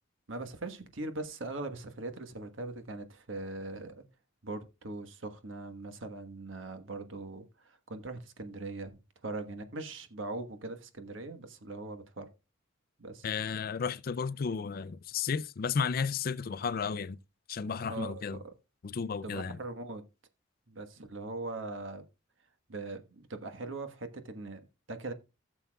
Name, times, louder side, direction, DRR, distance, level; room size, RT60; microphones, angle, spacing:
voice 1, 0.3-4.0 4.4-12.3 13.0-13.3 17.9-18.2 19.2-20.0 20.7-22.0 22.7-24.6 24.9-25.1, right 2 dB, 85° right, 1.3 m, -41 dB
voice 2, 13.2-17.2 17.5-18.4 18.8-19.6, left 6 dB, 50° left, 0.4 m, -33 dB
16.0 x 7.0 x 2.3 m
head